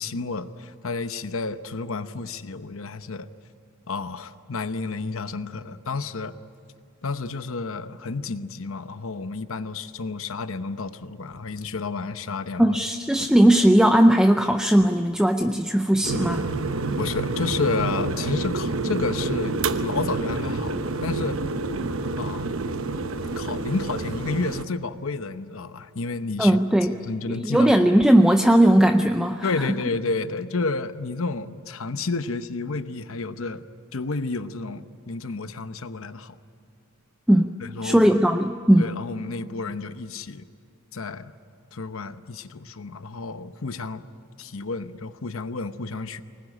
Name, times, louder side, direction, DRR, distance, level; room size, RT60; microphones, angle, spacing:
voice 1, 0.0-3.3 3.9-6.4 7.0-12.8 17.0-21.4 22.2-22.5 23.4-27.7 29.4-33.6 33.9-36.4 37.6-38.1 38.8-40.4 40.9-41.3 41.7-44.0 44.4-46.2, left 3 dB, 70° left, 11 dB, 0.9 m, -31 dB
voice 2, 12.6-16.4 26.4-26.9 27.3-29.5 37.3-37.5 37.8-38.9, right 1 dB, 5° right, 6 dB, 0.5 m, -18 dB
sound 1, 16.0-24.7, right 3 dB, 65° right, 0.9 m, -28 dB
24.5 x 20.0 x 10.0 m, 2.3 s
head